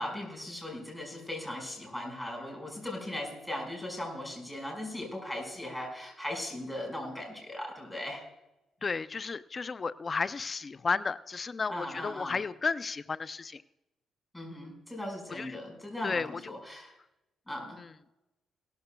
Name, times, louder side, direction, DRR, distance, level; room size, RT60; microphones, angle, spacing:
voice 1, 0.0-8.2 11.7-12.4 14.3-16.9 17.5-17.8, left 1 dB, 5° left, 1 dB, 5.0 m, -38 dB
voice 2, 8.8-13.6 15.3-15.5 16.0-16.5 17.8-17.9, left 4 dB, 35° left, 15 dB, 0.4 m, -33 dB
18.0 x 13.5 x 2.3 m, 0.94 s
cardioid pair, 90°, 0 cm